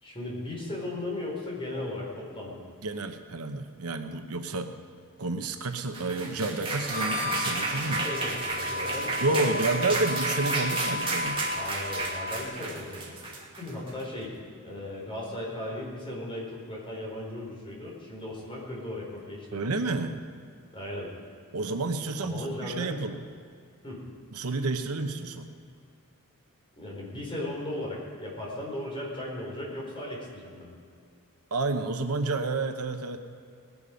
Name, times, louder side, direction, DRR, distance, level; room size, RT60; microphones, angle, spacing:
voice 1, 0.0-2.6 7.8-9.6 11.5-13.1 13.6-14.3 14.6-19.6 20.7-21.1 22.2-23.0 23.8-24.0 26.8-30.7, left 1 dB, 25° left, -3 dB, 4.4 m, -36 dB
voice 2, 2.8-4.7 5.2-8.0 9.2-11.4 19.5-20.2 21.5-23.2 24.3-25.5 31.5-33.2, right 3 dB, 75° right, 7 dB, 1.0 m, -30 dB
sound 1, 5.7-14.0, right 3 dB, 25° right, 2.3 m, -32 dB
Harmonica, 6.8-12.5, left 2 dB, 40° right, 2.4 m, -34 dB
19.5 x 11.0 x 5.1 m, 2.4 s
head